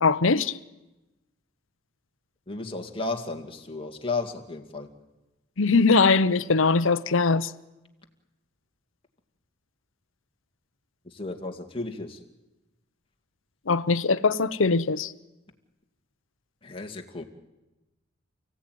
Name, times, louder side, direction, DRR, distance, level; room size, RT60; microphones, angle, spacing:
voice 1, 0.0-0.6 5.6-7.5 13.7-15.1, left 4 dB, 70° left, 0.8 m, -21 dB
voice 2, 2.5-4.9 11.0-12.2 16.6-17.2, left 3 dB, 25° left, 2.2 m, -33 dB
29.5 x 16.5 x 9.3 m
head